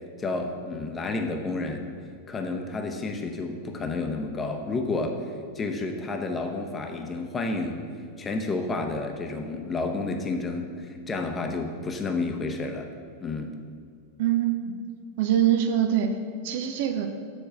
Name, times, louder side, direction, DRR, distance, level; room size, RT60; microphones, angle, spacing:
voice 1, 0.2-1.8 2.3-5.2 5.5-7.8 8.2-12.9 13.2-13.5, left 3 dB, 20° left, 4 dB, 0.8 m, -30 dB
voice 2, 14.2-14.7 15.2-16.1 16.4-17.1, right 10 dB, 50° right, 7 dB, 0.5 m, -23 dB
7.0 x 4.4 x 6.3 m, 2.1 s
figure-of-eight pair, 90°, 0 cm